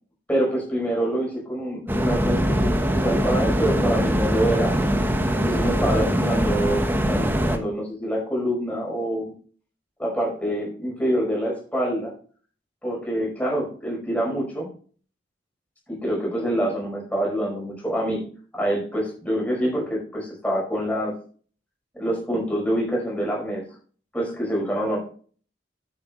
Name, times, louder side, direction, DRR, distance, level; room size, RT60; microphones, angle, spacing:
voice 1, 0.3-4.7 5.4-9.3 10.0-12.1 12.8-14.7 15.9-18.3 18.5-21.1 21.9-23.6 24.1-25.0, equal, 10° left, -3 dB, 5.2 m, -26 dB
sound 1, 1.9-7.6, equal, 10° right, 1.1 m, -22 dB
9.3 x 9.2 x 3.1 m, 0.42 s
head